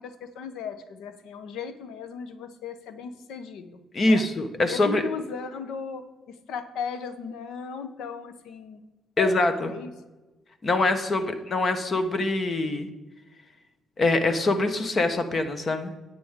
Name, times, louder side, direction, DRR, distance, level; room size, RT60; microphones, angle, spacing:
voice 1, 0.0-3.8 4.0-4.2 4.6-8.8 9.2-9.3 9.7-9.9 11.2-11.3, left 6 dB, 85° left, 10 dB, 0.9 m, -36 dB
voice 2, 3.9-5.0 9.2-9.7 10.6-12.9 14.0-15.9, left 2 dB, 40° left, 9 dB, 1.2 m, -24 dB
10.0 x 8.7 x 3.7 m, 1.1 s
cardioid pair, 90°, 0 cm